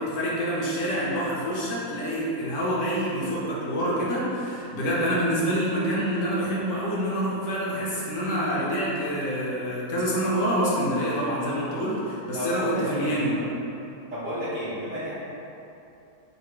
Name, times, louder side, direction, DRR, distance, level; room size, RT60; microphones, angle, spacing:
voice 1, 0.0-13.4, equal, 55° left, -6 dB, 0.9 m, -27 dB
voice 2, 12.3-13.1 14.1-15.2, equal, 55° right, -11 dB, 1.1 m, -31 dB
3.9 x 2.6 x 4.5 m, 2.9 s
omnidirectional pair, 1.8 m